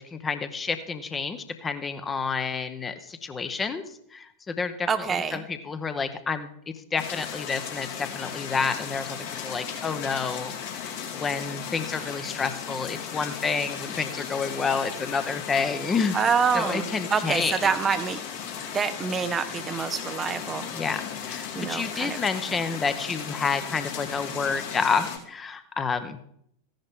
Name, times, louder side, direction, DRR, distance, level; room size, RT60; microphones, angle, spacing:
voice 1, 0.0-3.8 4.1-6.5 6.9-9.2 9.4-10.5 11.1-16.2 16.5-17.7 20.7-26.2, left 5 dB, 20° left, 10 dB, 1.0 m, -29 dB
voice 2, 4.9-5.4 16.1-18.2 18.7-20.7 21.6-22.2, right 6 dB, 20° right, 9 dB, 0.6 m, -26 dB
sound 1, 7.0-25.2, left 7 dB, 50° left, 2.3 m, -36 dB
15.0 x 10.5 x 3.7 m, 0.71 s
figure-of-eight pair, 90°, 0 cm